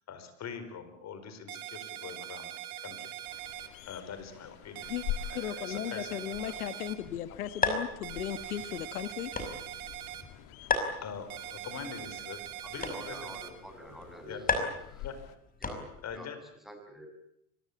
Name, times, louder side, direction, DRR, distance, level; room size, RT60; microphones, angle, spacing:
voice 1, 0.0-3.2 3.9-4.9 5.3-6.6 11.0-12.4 12.7-13.3 14.3-14.7 15.0-15.1 16.0-16.4, left 6 dB, 35° left, 10 dB, 4.8 m, -43 dB
sound 1, 1.5-3.7 4.8-7.0 8.0-10.2 11.3-13.5, right 13 dB, 85° right, 2.7 m, -42 dB
sound 2, 3.2-15.4, left 13 dB, 55° left, 2.6 m, -46 dB
voice 2, 5.3-9.3, left 11 dB, 90° left, 13 dB, 1.6 m, -36 dB
sound 3, 6.9-16.2, left 3 dB, 20° left, 5.5 m, -37 dB
voice 3, 12.6-14.6 14.9-15.1 15.6-15.8 16.1-16.3 16.6-17.1, equal, ahead, 4 dB, 7.3 m, -47 dB
25.0 x 20.0 x 8.7 m, 0.77 s
hypercardioid pair, 100°, 43 cm